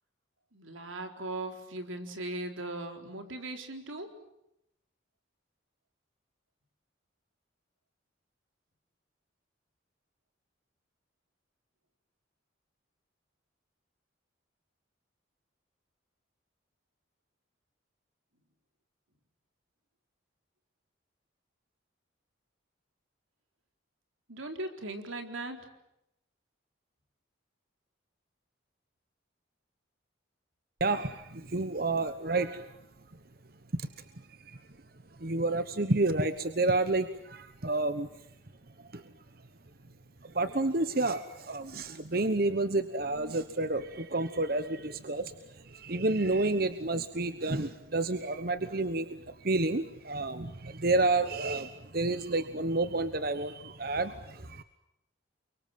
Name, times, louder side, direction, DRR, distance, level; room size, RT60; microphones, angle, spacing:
voice 1, 0.5-4.2 24.3-25.6, right 2 dB, 90° right, 5 dB, 4.1 m, -39 dB
voice 2, 30.8-32.7 33.7-33.9 34.5-34.6 35.2-38.1 38.9-39.0 40.2-45.3 45.6-54.6, right 2 dB, 50° right, 11 dB, 1.1 m, -30 dB
29.5 x 24.0 x 7.5 m, 0.83 s
head